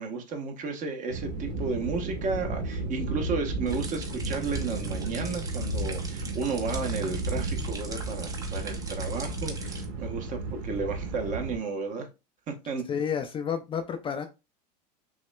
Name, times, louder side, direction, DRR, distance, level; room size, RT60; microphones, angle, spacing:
voice 1, 0.0-12.1 12.5-12.8, right 4 dB, 35° right, 0.9 m, -33 dB
sound 1, 1.1-11.6, right 2 dB, 70° right, 1.3 m, -33 dB
sound 2, 3.7-9.9, right 3 dB, 15° right, 0.7 m, -42 dB
voice 2, 12.9-14.3, left 7 dB, 25° left, 0.4 m, -30 dB
6.0 x 2.1 x 2.2 m
supercardioid pair, 115°, 21 cm